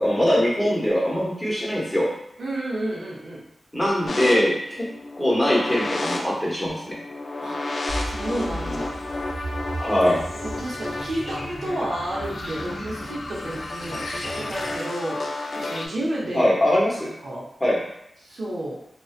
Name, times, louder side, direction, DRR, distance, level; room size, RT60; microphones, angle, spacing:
voice 1, 0.0-2.1 3.7-4.5 5.1-6.9 9.8-10.2 16.3-17.1 17.6-17.8, left 1 dB, 10° left, -5 dB, 1.0 m, -21 dB
voice 2, 2.4-3.4 7.4-7.6 8.0-9.0 10.4-16.4 17.0-17.4 18.2-18.8, right 1 dB, 80° right, -5 dB, 0.7 m, -31 dB
sound 1, 4.1-15.9, left 2 dB, 65° left, 0.3 m, -32 dB
sound 2, 7.9-14.8, right 1 dB, 40° right, 0.7 m, -36 dB
2.5 x 2.1 x 2.4 m, 0.77 s
cardioid pair, 50°, 0 cm